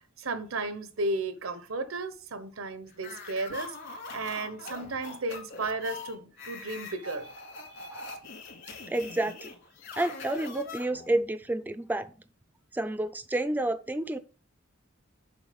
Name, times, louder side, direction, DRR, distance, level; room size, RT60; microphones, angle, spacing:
voice 1, 0.2-3.7 4.1-7.3, right 2 dB, 90° right, 0.9 m, -34 dB
sound 1, 3.0-11.2, left 3 dB, 60° left, 2.4 m, -42 dB
voice 2, 8.9-9.5 10.0-12.1 12.7-14.2, right 1 dB, 10° right, 0.3 m, -30 dB
7.0 x 4.1 x 5.2 m
head